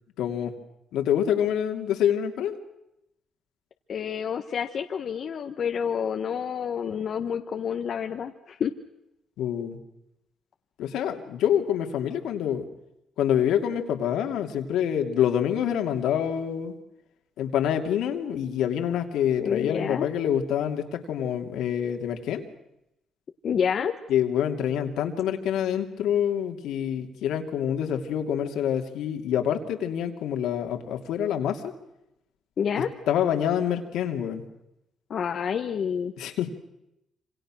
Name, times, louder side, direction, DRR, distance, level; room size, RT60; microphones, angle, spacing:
voice 1, 0.2-0.5 0.9-2.6 9.4-9.8 10.8-12.6 13.2-16.7 17.4-22.4 24.1-31.7 32.8-34.4 36.2-36.5, left 9 dB, 85° left, 5 dB, 2.8 m, -26 dB
voice 2, 3.9-8.7 19.4-20.1 23.4-23.9 32.6-32.9 35.1-36.1, left 7 dB, 55° left, 5 dB, 1.3 m, -28 dB
27.5 x 26.0 x 6.4 m, 0.87 s
cardioid pair, 90°, 0 cm